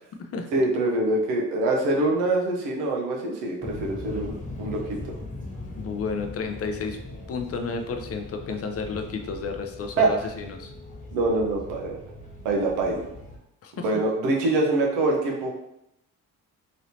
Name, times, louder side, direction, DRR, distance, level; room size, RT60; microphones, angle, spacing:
voice 1, 0.5-4.8 10.0-10.1 11.1-12.0 12.4-13.1 13.8-15.5, right 2 dB, 80° right, 0 dB, 0.8 m, -24 dB
sound 1, 3.6-13.4, left 2 dB, 20° left, 1.3 m, -40 dB
voice 2, 5.8-7.0 7.3-10.7 13.6-13.8, left 4 dB, 35° left, 5 dB, 0.6 m, -31 dB
3.1 x 2.7 x 2.7 m, 0.81 s
hypercardioid pair, 55°, 41 cm